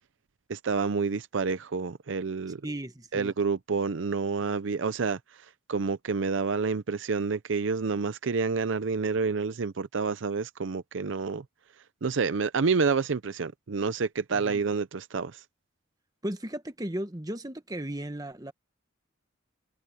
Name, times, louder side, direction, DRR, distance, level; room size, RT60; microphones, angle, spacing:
voice 1, 0.5-2.6 3.1-5.2 5.7-11.4 12.0-15.4, right 4 dB, 65° right, 0.5 m, -28 dB
voice 2, 2.6-3.3 14.3-14.6 16.2-18.5, right 1 dB, 20° right, 1.3 m, -35 dB
head